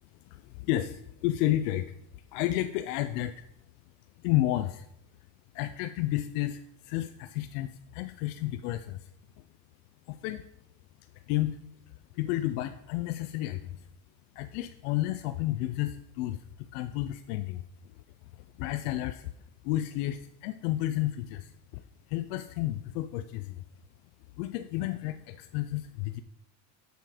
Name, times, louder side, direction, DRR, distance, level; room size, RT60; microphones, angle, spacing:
voice 1, 0.3-1.9 2.3-3.3 4.2-4.9 5.5-9.1 10.1-10.4 11.3-11.6 12.1-13.9 14.4-17.6 18.3-19.3 19.6-21.8 22.1-23.6 24.4-26.2, left 14 dB, 90° left, 10 dB, 0.6 m, -31 dB
6.9 x 6.4 x 4.9 m, 0.76 s
cardioid pair, 120°, 43 cm